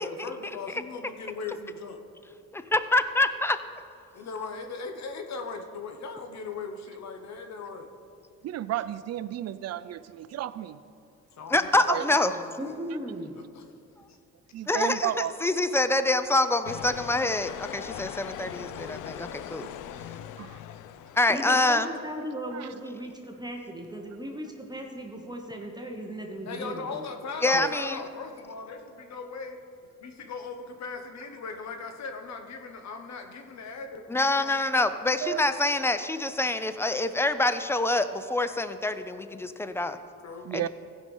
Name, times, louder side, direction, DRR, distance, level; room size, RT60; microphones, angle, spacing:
voice 1, 0.0-2.0 4.1-7.9 11.4-12.8 13.5-13.6 26.4-29.6 30.0-34.9 40.2-40.5, left 4 dB, 65° left, 6 dB, 1.2 m, -39 dB
voice 2, 2.5-3.6 11.5-12.3 14.7-15.1 15.4-19.6 21.2-21.9 27.4-28.0 34.1-40.0 40.5-40.7, left 2 dB, 10° left, 11 dB, 0.5 m, -26 dB
voice 3, 8.4-10.8 11.9-12.1 14.5-15.3 19.6-19.7 20.4-20.6 22.5-22.7 27.5-27.7 35.2-35.4 40.4-40.7, right 12 dB, 55° right, 14 dB, 0.5 m, -32 dB
voice 4, 12.6-13.4 21.3-27.1, right 1 dB, 15° right, 2 dB, 1.1 m, -37 dB
sound 1, 16.6-21.8, left 10 dB, 85° left, 0.5 m, -40 dB
15.5 x 5.5 x 5.5 m, 2.6 s
cardioid pair, 90°, 30 cm